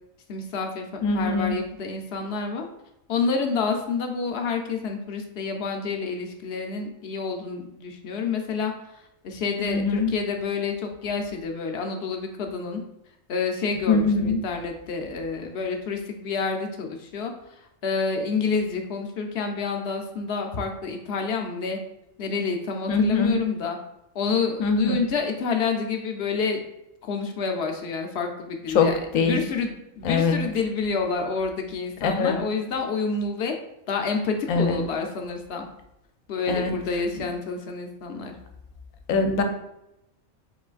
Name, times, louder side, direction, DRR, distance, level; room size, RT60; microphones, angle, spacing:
voice 1, 0.3-0.9 1.1-2.7 3.1-12.8 13.3-21.8 22.2-23.8 24.1-26.6 27.0-33.5 33.9-35.7 36.3-38.3, left 5 dB, 65° left, 4 dB, 0.7 m, -28 dB
voice 2, 1.0-1.5 9.6-10.1 13.9-14.4 22.9-23.4 24.6-25.0 28.7-29.5 30.0-30.4 32.0-32.4 34.5-34.8 36.5-36.8 37.1-37.2 39.1-39.4, left 4 dB, 80° left, 6 dB, 1.0 m, -22 dB
4.7 x 3.8 x 2.4 m, 0.86 s
omnidirectional pair, 1.4 m